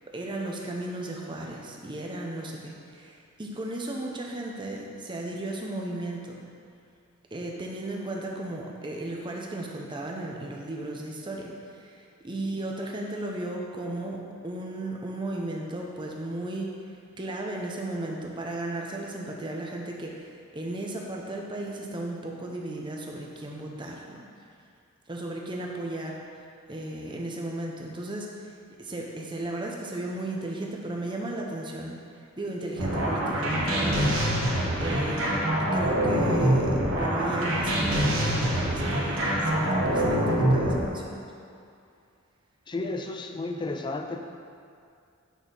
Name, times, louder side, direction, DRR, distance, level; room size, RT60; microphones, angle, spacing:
voice 1, 0.1-6.4 7.3-11.5 11.8-16.8 17.2-24.3 25.1-26.2 26.7-28.3 28.8-31.9 32.4-34.1 34.8-35.5 35.7-41.2, right 1 dB, 20° right, -1 dB, 0.7 m, -35 dB
sound 1, 32.8-40.8, right 1 dB, 70° right, 1.2 m, -25 dB
voice 2, 42.7-44.2, left 2 dB, 20° left, 5 dB, 0.3 m, -32 dB
6.2 x 4.2 x 5.3 m, 2.4 s
head